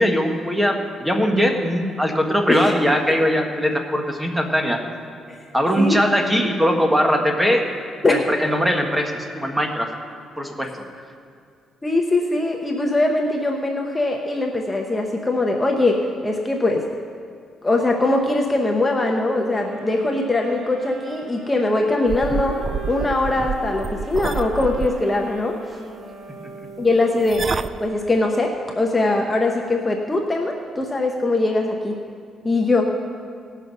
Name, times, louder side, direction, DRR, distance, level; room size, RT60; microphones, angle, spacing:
voice 1, 0.0-4.8 5.5-7.7 8.1-9.9 10.4-10.9 26.6-26.8, equal, 10° right, 3 dB, 1.4 m, -20 dB
voice 2, 11.8-16.9 17.6-22.6 22.9-25.6 26.8-27.5 27.8-32.0 32.4-32.9, left 2 dB, 20° left, 1 dB, 1.0 m, -21 dB
sound 1, 19.3-27.5, right 3 dB, 65° right, 1.8 m, -39 dB
sound 2, 22.1-24.9 27.3-27.8, right 5 dB, 40° right, 0.4 m, -28 dB
18.0 x 6.3 x 5.4 m, 2.2 s
cardioid pair, 90°, 0 cm